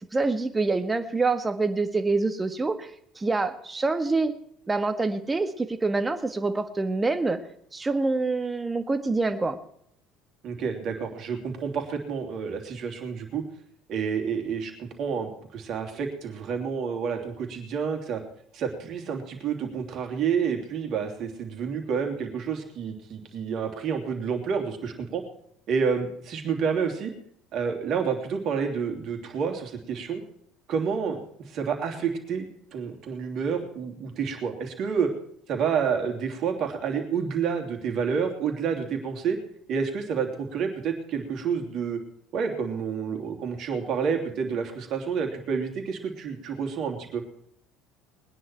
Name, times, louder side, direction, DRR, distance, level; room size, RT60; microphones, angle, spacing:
voice 1, 0.1-2.9 3.1-4.3 4.7-7.4 7.7-9.6, right 3 dB, 20° right, 8 dB, 1.6 m, -26 dB
voice 2, 10.4-13.4 13.9-18.2 18.5-25.2 25.7-27.1 27.5-30.2 30.7-31.2 31.4-35.1 35.5-39.4 39.7-42.0 42.3-47.2, right 6 dB, 55° right, 4 dB, 3.1 m, -29 dB
21.0 x 10.0 x 4.7 m, 0.69 s
hypercardioid pair, 70°, 0 cm